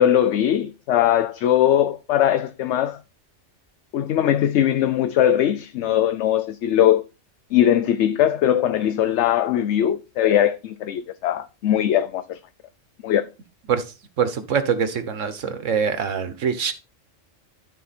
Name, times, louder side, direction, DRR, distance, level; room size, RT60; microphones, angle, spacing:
voice 1, 0.0-3.0 3.9-7.0 7.5-12.4 13.0-13.3, left 11 dB, 70° left, 0.9 m, -20 dB
voice 2, 14.2-16.7, right 6 dB, 85° right, 1.5 m, -24 dB
12.5 x 4.4 x 4.2 m
omnidirectional pair, 1.3 m